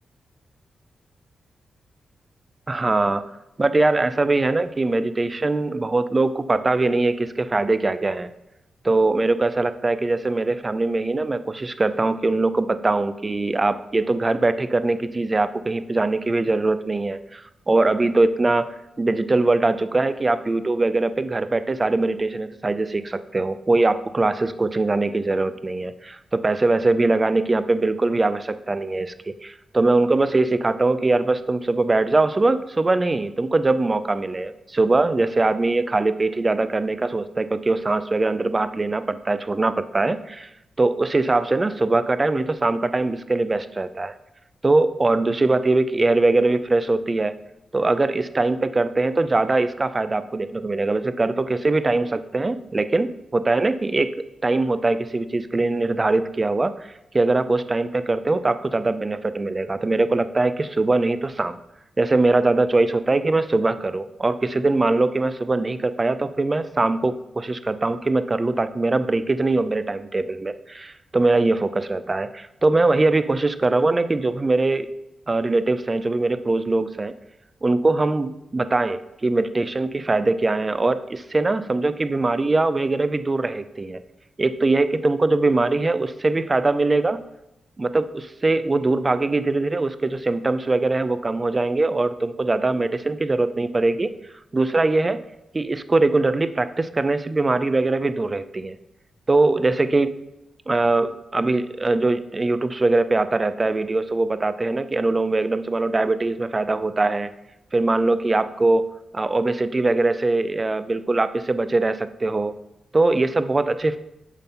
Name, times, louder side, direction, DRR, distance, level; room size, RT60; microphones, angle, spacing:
voice 1, 2.7-3.3 3.6-8.3 8.8-18.7 19.0-40.5 40.8-44.1 44.6-47.3 47.7-54.1 54.4-56.9 57.1-61.6 62.0-74.9 75.3-77.1 77.6-84.0 84.4-87.2 87.8-94.1 94.5-95.2 95.5-98.8 99.3-100.1 100.7-107.3 107.7-108.8 109.1-112.5 112.9-114.0, right 2 dB, 25° right, 13 dB, 0.4 m, -22 dB
7.0 x 4.2 x 5.5 m, 0.91 s
wide cardioid pair, 125°, 0 cm